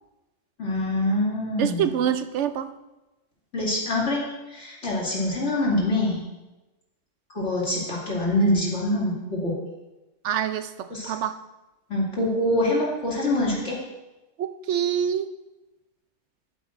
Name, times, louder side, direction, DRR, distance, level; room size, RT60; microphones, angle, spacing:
voice 1, 0.6-1.8 3.5-4.2 4.5-6.2 7.3-9.5 10.9-11.1 11.9-13.8, left 1 dB, 75° left, -5 dB, 3.0 m, -25 dB
voice 2, 1.6-2.7 10.2-11.4 14.4-15.3, right 9 dB, 80° right, 11 dB, 0.9 m, -26 dB
14.5 x 8.6 x 2.6 m, 1.0 s
omnidirectional pair, 1.2 m